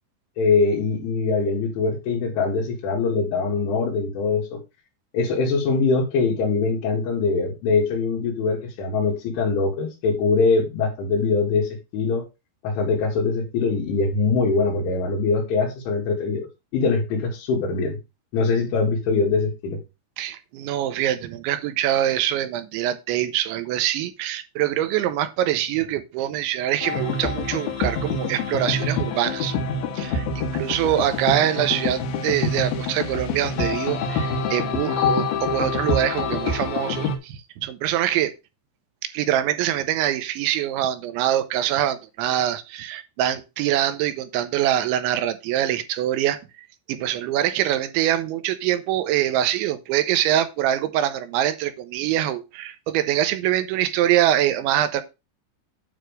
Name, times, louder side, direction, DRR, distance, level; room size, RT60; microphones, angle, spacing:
voice 1, 0.4-4.6 5.1-12.3 12.6-16.5 16.7-18.0 18.3-19.8, left 4 dB, 85° left, 4.3 m, -22 dB
voice 2, 20.2-29.6 30.0-38.3 39.1-46.4 46.9-55.0, right 12 dB, 85° right, 3.0 m, -24 dB
sound 1, 26.8-37.2, left 4 dB, 65° left, 2.7 m, -26 dB
9.4 x 3.4 x 6.4 m
omnidirectional pair, 5.4 m